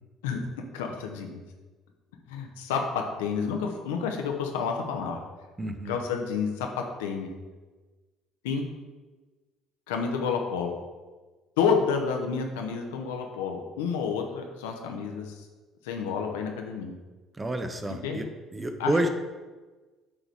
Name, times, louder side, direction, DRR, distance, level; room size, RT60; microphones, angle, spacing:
voice 1, 0.7-1.4 2.3-5.2 5.9-7.3 8.4-8.6 9.9-10.7 11.6-15.3 15.8-17.0 17.9-18.2 18.8-18.9, left 6 dB, 70° left, 3 dB, 0.9 m, -29 dB
voice 2, 5.6-6.0 17.4-19.1, right 1 dB, 20° right, 7 dB, 0.8 m, -29 dB
8.5 x 3.9 x 4.8 m, 1.3 s
figure-of-eight pair, 55°, 0 cm